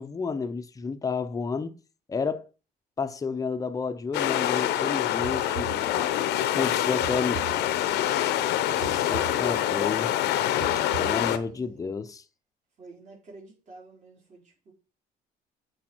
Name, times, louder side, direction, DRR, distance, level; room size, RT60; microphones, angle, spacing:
voice 1, 0.0-1.8 2.1-2.5 3.0-5.7 6.5-7.4 8.8-10.1 11.0-12.2, left 5 dB, 20° left, 0.6 m, -31 dB
sound 1, 4.1-11.4, left 12 dB, 80° left, 0.8 m, -26 dB
sound 2, 5.2-6.4 7.0-8.2 8.8-10.0 10.6-11.7, right 15 dB, 70° right, 0.6 m, -41 dB
voice 2, 5.8-6.3 6.7-9.7 10.5-11.8 12.8-14.7, right 3 dB, 45° right, 4.5 m, -50 dB
8.5 x 4.9 x 4.5 m
cardioid pair, 110°, 17 cm